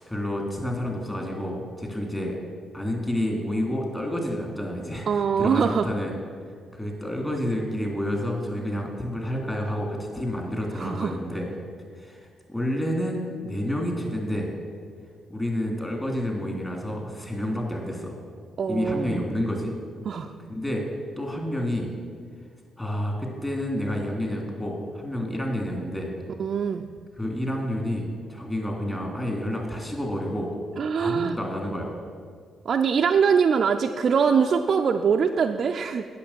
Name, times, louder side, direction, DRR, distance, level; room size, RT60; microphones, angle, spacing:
voice 1, 0.0-2.3 2.7-6.1 6.7-11.5 11.9-14.5 15.3-18.1 18.7-19.7 20.5-20.8 21.2-21.9 22.8-26.1 27.2-30.5 31.0-31.9, left 1 dB, 15° left, 1 dB, 2.9 m, -29 dB
voice 2, 5.1-5.9 10.8-11.2 18.6-19.2 20.1-20.3 26.4-26.8 30.8-31.3 32.7-36.2, right 6 dB, 55° right, 3 dB, 0.4 m, -23 dB
8.5 x 6.4 x 7.3 m, 2.1 s
supercardioid pair, 55°, 0 cm